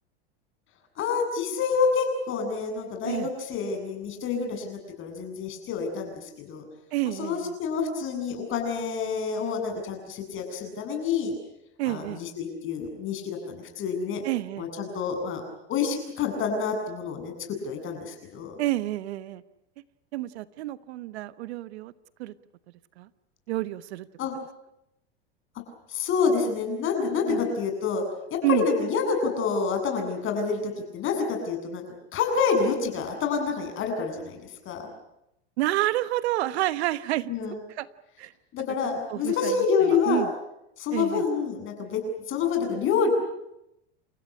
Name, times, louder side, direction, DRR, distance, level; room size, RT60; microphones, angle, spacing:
voice 1, 1.0-6.6 7.1-11.3 11.9-14.2 14.6-15.4 15.7-18.6 24.2-24.3 25.9-28.0 28.3-31.8 32.1-34.8 37.3-37.6 38.5-40.3 40.8-42.0 42.3-43.1, left 5 dB, 35° left, 4 dB, 7.9 m, -28 dB
voice 2, 6.9-7.5 11.8-12.2 14.2-14.7 18.6-19.4 20.1-21.9 22.2-22.3 23.0-23.1 23.5-24.1 27.2-27.4 28.4-28.6 35.6-37.3 37.8-37.9 38.2-38.3 39.1-39.6 40.1-40.3 40.9-41.2, right 16 dB, 75° right, 15 dB, 1.2 m, -29 dB
29.5 x 16.0 x 9.9 m, 0.84 s
supercardioid pair, 130°, 33 cm